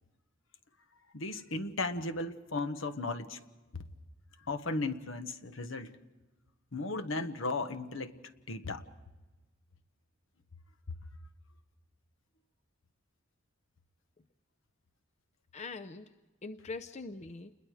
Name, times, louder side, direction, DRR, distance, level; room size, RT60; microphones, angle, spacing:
voice 1, 1.1-3.4 3.7-3.8 4.5-6.0 6.7-8.2 8.5-8.8 10.9-11.0, left 3 dB, 75° left, 1.3 m, -35 dB
voice 2, 15.5-17.5, left 3 dB, 35° left, 0.6 m, -43 dB
28.5 x 21.5 x 4.9 m
head